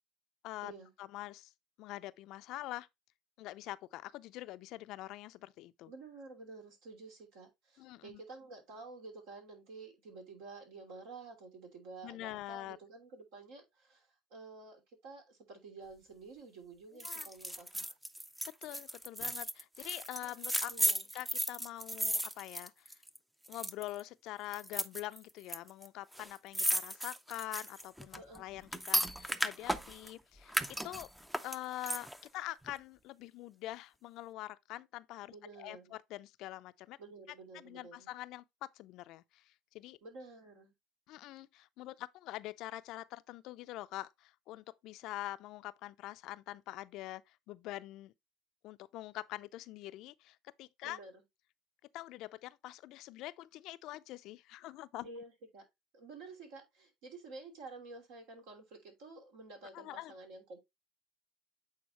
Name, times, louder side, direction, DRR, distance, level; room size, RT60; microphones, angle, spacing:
voice 1, 1.0-1.5 1.8-2.9 3.4-5.9 7.8-8.2 12.0-12.8 17.0-17.3 18.5-20.7 21.1-23.0 23.5-31.1 31.4-37.0 37.5-40.0 41.1-48.1 48.6-51.0 51.9-55.1 59.7-60.1, left 16 dB, 60° left, 0.4 m, -45 dB
voice 2, 5.9-17.9 20.2-20.4 20.7-21.0 28.2-28.5 35.3-35.9 37.0-38.1 40.0-40.7 50.8-51.1 55.0-55.7 55.9-60.6, right 3 dB, 75° right, 2.8 m, -51 dB
sound 1, 17.0-23.2 23.5-24.0 24.5-25.6 25.8-25.9 26.1-30.1 30.5-32.3 32.7-32.8, equal, 5° right, 0.5 m, -35 dB
8.6 x 3.9 x 2.9 m
hypercardioid pair, 85°, 0 cm